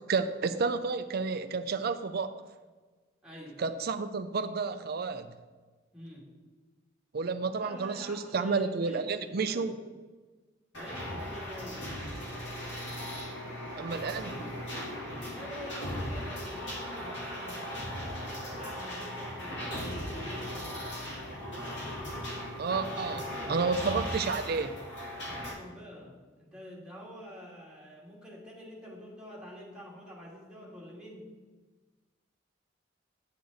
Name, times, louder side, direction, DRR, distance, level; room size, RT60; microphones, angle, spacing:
voice 1, 0.1-2.3 3.6-5.3 7.1-9.7 13.8-14.4 22.6-23.2 23.5-24.8, right 4 dB, 55° right, 9 dB, 0.5 m, -31 dB
voice 2, 3.2-3.6 5.9-6.3 7.6-9.7 10.7-11.9 15.3-20.8 23.1-23.6 25.1-31.3, equal, 5° right, -5 dB, 2.0 m, -47 dB
sound 1, 10.7-25.5, equal, 70° left, 2.1 m, -38 dB
9.0 x 6.6 x 4.0 m, 1.3 s
head